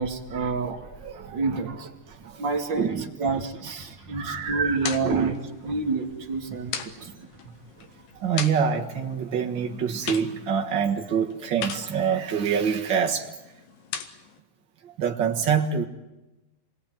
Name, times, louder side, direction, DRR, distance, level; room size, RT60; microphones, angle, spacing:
voice 1, 0.0-0.9 1.1-1.9 2.2-5.3 5.6-7.2, right 4 dB, 35° right, 3 dB, 2.0 m, -29 dB
voice 2, 1.0-1.6 2.8-3.1 4.1-5.3 8.2-13.2 15.0-15.8, right 7 dB, 80° right, 1 dB, 1.0 m, -26 dB
sound 1, 4.3-14.4, left 8 dB, 75° left, 3.4 m, -40 dB
28.0 x 21.0 x 9.3 m, 1.0 s
omnidirectional pair, 4.7 m